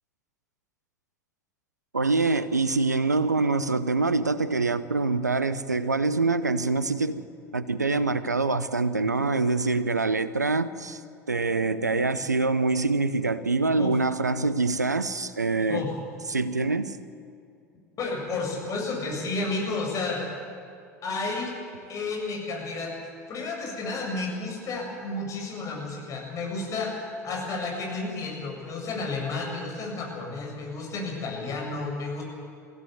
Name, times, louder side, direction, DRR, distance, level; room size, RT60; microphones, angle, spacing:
voice 1, 1.9-7.2 7.5-11.0 11.3-15.9 16.3-17.0, right 3 dB, 85° right, 0.8 m, -25 dB
voice 2, 18.0-20.2 21.0-21.5 21.9-22.9 23.3-26.9 27.2-32.2, left 3 dB, 35° left, 7.7 m, -31 dB
22.5 x 16.0 x 9.5 m
figure-of-eight pair, 75°, 9 cm